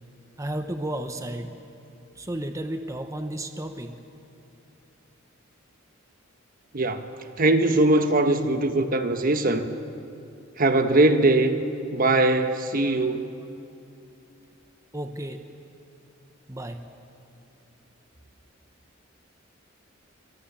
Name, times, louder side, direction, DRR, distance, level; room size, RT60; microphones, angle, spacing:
voice 1, 0.4-1.5 2.1-4.0 14.9-15.4 16.5-16.8, right 1 dB, 15° right, 6 dB, 1.1 m, -33 dB
voice 2, 7.4-9.7 10.6-11.6 11.9-13.3, right 2 dB, 45° right, 8 dB, 1.2 m, -21 dB
25.5 x 24.0 x 7.4 m, 2.7 s
head